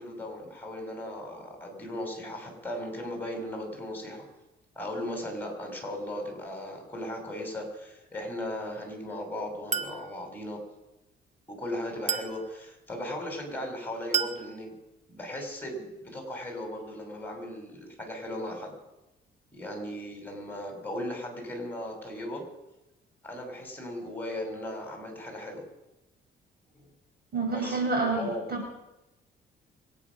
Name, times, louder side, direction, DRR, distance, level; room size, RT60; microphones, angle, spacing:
voice 1, 0.0-4.2 4.7-10.6 11.5-14.7 15.1-18.8 19.5-22.4 23.2-25.6 26.7-26.9 27.5-27.8 28.1-28.4, left 1 dB, 10° left, 2 dB, 6.3 m, -37 dB
Chink clink, 9.7-10.1 12.1-12.4 14.1-14.4, right 7 dB, 35° right, 1.2 m, -29 dB
voice 2, 27.3-28.9, right 3 dB, 50° right, 1 dB, 6.0 m, -29 dB
25.0 x 9.2 x 6.3 m, 0.97 s
cardioid pair, 90°, 20 cm